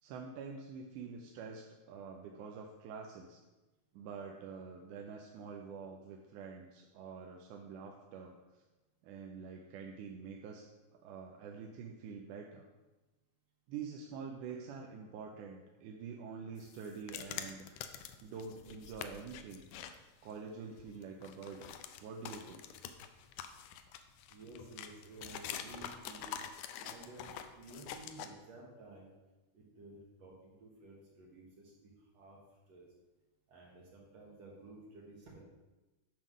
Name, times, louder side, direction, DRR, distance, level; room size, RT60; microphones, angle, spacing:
voice 1, 0.0-3.4 3.9-8.6 9.0-10.6 11.0-12.7 13.7-17.8 18.2-19.7 20.2-21.7 22.0-22.6, right 5 dB, 80° right, 1 dB, 2.0 m, -46 dB
sound 1, 16.6-19.9 20.3-20.4 20.8-28.3, left 9 dB, 80° left, 2.0 m, -46 dB
voice 2, 24.3-26.3 26.8-27.3 27.5-29.1 29.5-32.9 33.5-35.4, right 2 dB, 60° right, -3 dB, 2.1 m, -53 dB
9.7 x 3.6 x 6.1 m, 1.1 s
omnidirectional pair, 3.8 m